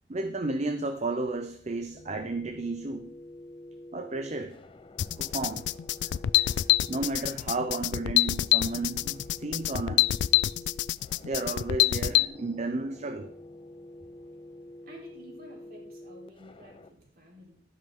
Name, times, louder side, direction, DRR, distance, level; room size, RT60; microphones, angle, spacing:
voice 1, 0.1-3.1 3.9-4.6 5.2-5.8 6.4-10.1 11.2-13.3, right 2 dB, 40° right, 7 dB, 0.7 m, -33 dB
sound 1, 1.3-16.9, left 1 dB, 30° left, 0.7 m, -48 dB
sound 2, 5.0-12.3, left 14 dB, 75° left, 0.3 m, -25 dB
voice 2, 14.8-17.6, equal, 55° right, -1 dB, 3.8 m, -51 dB
12.0 x 10.5 x 3.8 m, 0.62 s
head